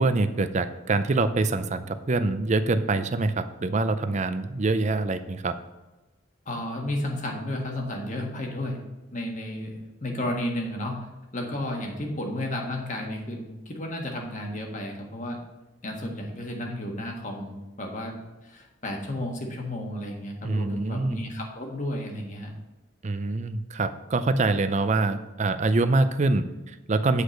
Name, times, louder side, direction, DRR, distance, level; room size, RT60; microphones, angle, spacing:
voice 1, 0.0-5.5 20.4-21.2 23.0-27.2, right 3 dB, 35° right, 11 dB, 0.5 m, -25 dB
voice 2, 6.4-8.8 9.1-11.1 11.3-15.4 15.8-22.5, left 1 dB, 40° left, 1 dB, 1.5 m, -32 dB
8.3 x 4.9 x 6.4 m, 1.1 s
head